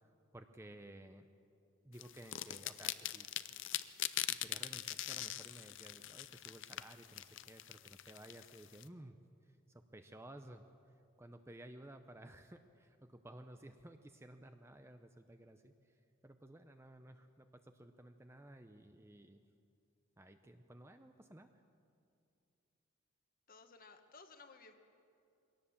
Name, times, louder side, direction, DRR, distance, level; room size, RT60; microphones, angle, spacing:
voice 1, 0.3-1.3 1.8-3.3 4.2-9.2 9.4-10.7 11.2-19.4 20.2-21.5, right 1 dB, 10° right, 7 dB, 0.6 m, -55 dB
sound 1, 2.0-8.8, left 13 dB, 55° left, 0.5 m, -42 dB
voice 2, 23.5-24.7, left 4 dB, 40° left, 7 dB, 1.4 m, -57 dB
22.5 x 18.0 x 7.2 m, 2.5 s
head